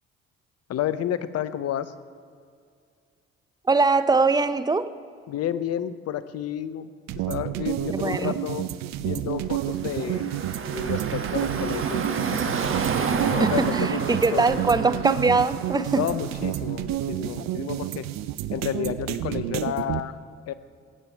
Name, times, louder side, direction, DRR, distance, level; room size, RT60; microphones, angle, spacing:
voice 1, 0.7-1.9 5.3-8.6 9.0-10.3 10.7-12.5 13.1-14.6 15.9-18.1 18.5-20.1 20.5-20.6, left 10 dB, 55° left, 14 dB, 0.8 m, -31 dB
voice 2, 3.7-4.9 8.0-8.3 13.4-16.0, right 3 dB, 15° right, 13 dB, 0.6 m, -22 dB
sound 1, 7.1-20.0, right 13 dB, 65° right, 0.6 m, -30 dB
Car passing by / Traffic noise roadway noise, 9.6-16.6, right 5 dB, 45° right, 1.3 m, -30 dB
18.0 x 8.8 x 4.5 m, 2.2 s
hypercardioid pair, 55°, 29 cm